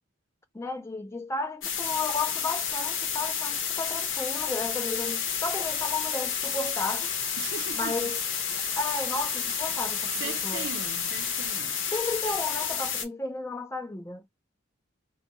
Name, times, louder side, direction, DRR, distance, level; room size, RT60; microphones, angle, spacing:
voice 1, 0.5-7.1 7.8-8.2 8.8-10.7 11.9-14.2, left 3 dB, 15° left, 0.4 m, -33 dB
sound 1, 1.6-13.1, left 7 dB, 65° left, 0.6 m, -30 dB
sound 2, 6.9-12.0, right 4 dB, 75° right, 0.9 m, -48 dB
voice 2, 7.4-8.1 10.1-11.8, right 6 dB, 60° right, 0.4 m, -39 dB
2.2 x 2.2 x 2.7 m
head